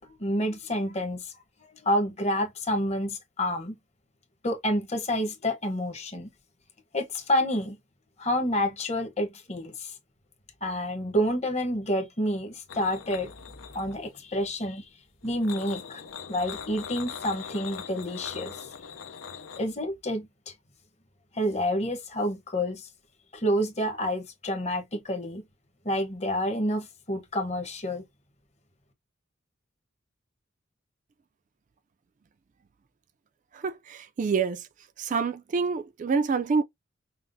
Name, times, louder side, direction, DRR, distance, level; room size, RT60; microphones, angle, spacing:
voice 1, 0.2-1.3 1.6-3.8 4.4-6.3 6.9-7.8 8.2-9.9 10.6-13.3 13.7-14.9 15.2-16.0 16.3-18.7 19.6-20.5 21.3-22.9 23.3-25.4 25.8-28.0, equal, 35° left, 1.0 m, -29 dB
sound 1, 12.7-14.2 15.2-19.7, left 7 dB, 80° left, 0.6 m, -41 dB
voice 2, 33.5-34.6 35.0-36.6, right 5 dB, 40° right, 0.3 m, -27 dB
5.6 x 2.0 x 2.6 m
head